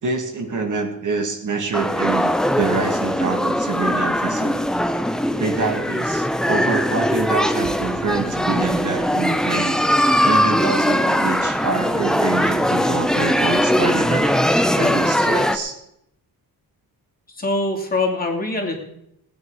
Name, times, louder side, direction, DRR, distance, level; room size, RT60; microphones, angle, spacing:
voice 1, 0.0-4.6 5.4-9.8 10.2-14.4 14.8-15.8, right 4 dB, 55° right, 3 dB, 2.0 m, -26 dB
sound 1, 1.7-15.6, equal, ahead, 0.7 m, -20 dB
voice 2, 17.3-18.7, left 2 dB, 25° left, -1 dB, 2.7 m, -23 dB
18.0 x 9.5 x 4.8 m, 0.78 s
wide cardioid pair, 140°, 38 cm